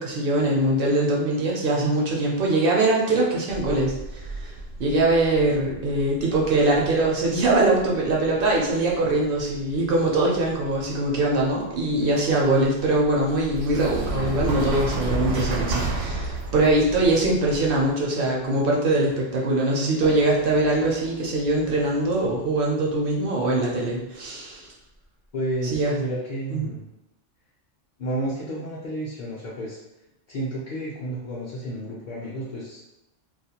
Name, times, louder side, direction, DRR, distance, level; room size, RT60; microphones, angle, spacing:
voice 1, 0.0-24.7 25.6-25.9 26.5-26.7, right 2 dB, 60° right, -2 dB, 0.6 m, -22 dB
sound 1, 3.5-17.9, right 2 dB, 85° right, 0.9 m, -33 dB
sound 2, 13.9-19.1 20.0-24.0 24.9-25.0 25.5-25.6, right 1 dB, 10° right, 0.4 m, -42 dB
voice 2, 25.3-26.9 28.0-29.8 30.3-32.8, right 1 dB, 60° left, -6 dB, 0.5 m, -31 dB
2.4 x 2.1 x 2.8 m, 0.89 s
omnidirectional pair, 1.3 m